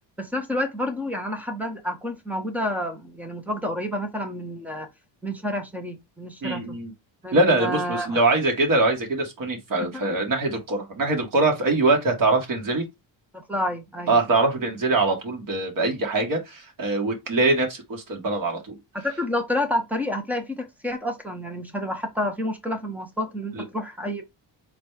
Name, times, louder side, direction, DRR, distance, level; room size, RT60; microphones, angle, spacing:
voice 1, 0.2-4.9 5.2-6.8 7.2-8.2 10.0-10.1 13.3-14.2 19.0-24.2, left 1 dB, 5° right, 0.6 m, -29 dB
voice 2, 6.4-6.9 7.3-12.9 14.1-18.8 23.5-23.6, right 2 dB, 45° right, 1.5 m, -23 dB
4.0 x 2.3 x 4.6 m
cardioid pair, 165°, 46 cm